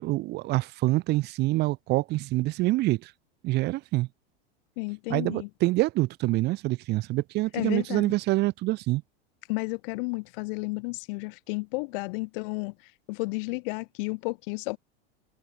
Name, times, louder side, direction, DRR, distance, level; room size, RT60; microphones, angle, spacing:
voice 1, 0.0-3.1 3.4-4.1 5.1-9.0, right 19 dB, 35° right, 0.6 m, -26 dB
voice 2, 4.8-5.5 7.5-8.1 9.5-14.8, left 27 dB, 55° left, 2.0 m, -32 dB
supercardioid pair, 135°, 32 cm